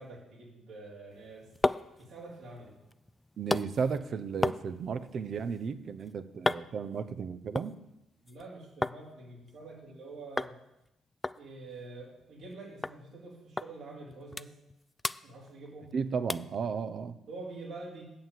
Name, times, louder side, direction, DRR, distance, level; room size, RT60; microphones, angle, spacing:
voice 1, 0.0-1.5 2.0-2.8 8.2-10.6 11.4-14.5 15.2-16.0 17.3-18.0, right 2 dB, 75° right, -4 dB, 4.1 m, -46 dB
sound 1, 1.1-9.0 9.3-10.0 10.4-10.6 10.8-10.9 11.2-12.5 12.8-13.0 13.6-13.7 14.1-14.7 15.0-15.9 16.3-16.6 17.1-17.2, left 2 dB, 15° left, 0.3 m, -36 dB
voice 2, 3.4-7.7 15.9-17.2, right 6 dB, 55° right, 11 dB, 0.7 m, -34 dB
8.7 x 7.3 x 7.6 m, 0.89 s
cardioid pair, 90°, 0 cm